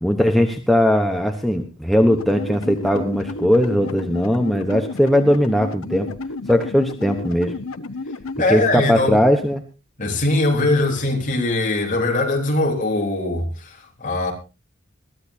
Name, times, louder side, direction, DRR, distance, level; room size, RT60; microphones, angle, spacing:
voice 1, 0.0-6.1 6.5-7.5 8.5-9.6, equal, ahead, 1.0 m, -19 dB
sound 1, 2.1-8.4, left 3 dB, 80° left, 1.0 m, -32 dB
voice 2, 8.4-9.3 10.0-14.3, left 2 dB, 40° left, 3.8 m, -21 dB
21.5 x 14.5 x 2.8 m
head